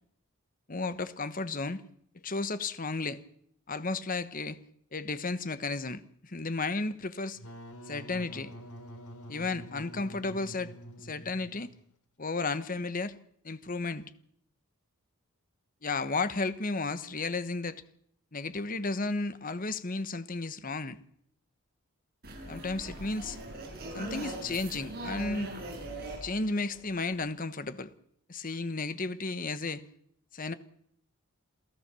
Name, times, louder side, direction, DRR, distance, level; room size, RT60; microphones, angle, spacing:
voice 1, 0.7-1.8 2.2-3.2 3.7-4.6 4.9-7.4 7.9-8.5 9.3-10.7 11.0-11.7 12.2-13.2 13.4-14.0 15.8-17.8 18.3-21.0 22.5-23.4 23.9-25.5 26.2-27.9 28.3-29.8 30.3-30.5, left 3 dB, 40° left, 1.2 m, -33 dB
Wind instrument woodwind instrument, 7.3-11.9, equal, 85° left, 3.4 m, -47 dB
sound 1, 22.2-27.4, right 2 dB, 45° right, 7.5 m, -41 dB
28.0 x 16.0 x 6.9 m
head